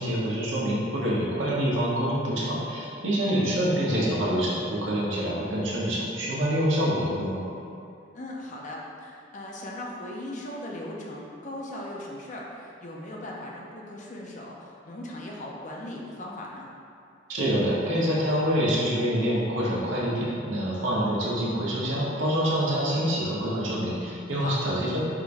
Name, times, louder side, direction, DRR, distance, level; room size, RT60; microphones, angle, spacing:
voice 1, 0.0-7.4 17.3-25.0, equal, 75° right, -6 dB, 1.0 m, -26 dB
voice 2, 8.1-16.7 24.4-24.6, left 1 dB, 40° left, -2 dB, 0.6 m, -38 dB
3.7 x 2.6 x 4.6 m, 2.6 s
head